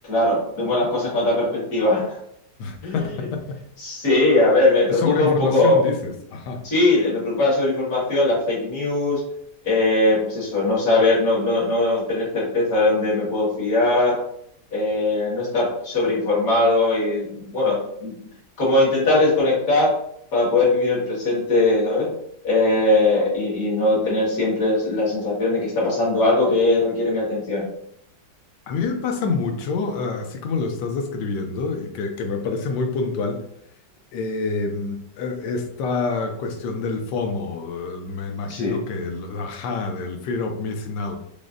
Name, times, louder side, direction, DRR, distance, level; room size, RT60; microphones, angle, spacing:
voice 1, 0.1-2.2 2.8-3.0 3.8-5.8 6.6-9.2 9.6-14.2 14.7-18.1 18.6-19.9 20.3-22.1 22.4-27.6 38.5-38.8, left 2 dB, 55° left, -7 dB, 2.0 m, -20 dB
voice 2, 2.6-3.6 4.9-6.6 28.7-33.4 34.1-41.2, left 4 dB, 75° left, 5 dB, 1.2 m, -27 dB
4.9 x 2.0 x 2.5 m, 0.72 s
omnidirectional pair, 1.9 m